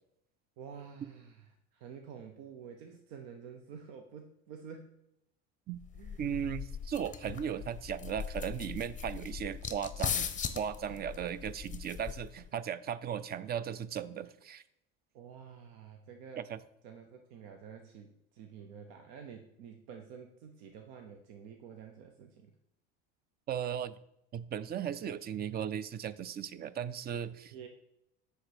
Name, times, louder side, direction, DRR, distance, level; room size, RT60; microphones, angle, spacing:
voice 1, 0.6-5.0 5.9-6.2 10.9-11.0 15.1-16.5 16.8-22.5 27.5-27.7, right 7 dB, 70° right, 5 dB, 0.8 m, -49 dB
sound 1, 5.8-12.5, left 7 dB, 25° left, 0.6 m, -39 dB
voice 2, 6.2-14.6 16.4-16.6 23.5-24.0 24.3-27.7, right 9 dB, 30° right, 16 dB, 0.4 m, -37 dB
7.8 x 3.3 x 6.3 m, 0.80 s
supercardioid pair, 95°, 34 cm